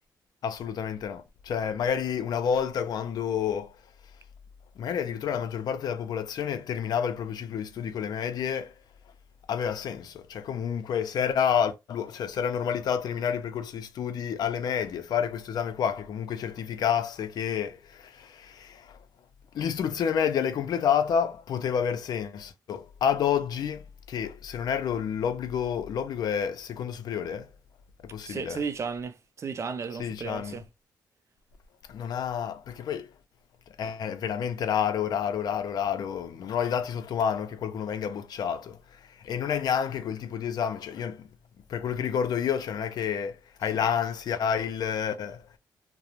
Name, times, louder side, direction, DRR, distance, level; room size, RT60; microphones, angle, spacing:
voice 1, 0.4-3.8 4.8-8.8 9.5-19.0 19.5-27.5 28.0-28.6 30.0-30.6 31.9-33.1 33.7-41.3 41.7-45.5, left 8 dB, 70° left, 0.4 m, -29 dB
voice 2, 28.3-30.6, right 5 dB, 40° right, 0.4 m, -34 dB
2.4 x 2.0 x 2.9 m
cardioid pair, 100°, 7 cm